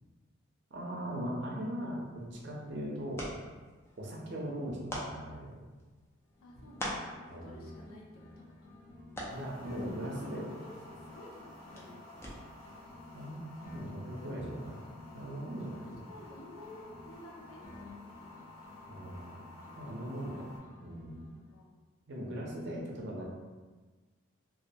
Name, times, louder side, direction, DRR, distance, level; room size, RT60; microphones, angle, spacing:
voice 1, 0.7-3.3 4.0-5.5 7.3-7.6 9.3-10.4 13.1-14.8 15.1-15.8 18.9-19.3 19.8-20.4 20.8-21.1 22.1-23.2, equal, 55° right, -2 dB, 0.5 m, -39 dB
sound 1, 2.0-12.7, equal, 10° left, 0.3 m, -46 dB
sound 2, 6.2-11.9 12.1-15.9 16.1-19.9 20.1-21.6, left 2 dB, 50° left, 0.7 m, -54 dB
voice 2, 6.4-8.1 8.6-8.7 9.8-10.6 10.9-12.0 15.6-18.2 18.4-18.6 20.0-20.5 21.5-21.7, left 1 dB, 85° left, -3 dB, 0.5 m, -52 dB
sound 3, 9.3-20.6, left 2 dB, 10° right, 1.1 m, -53 dB
2.3 x 2.1 x 2.7 m, 1.3 s
head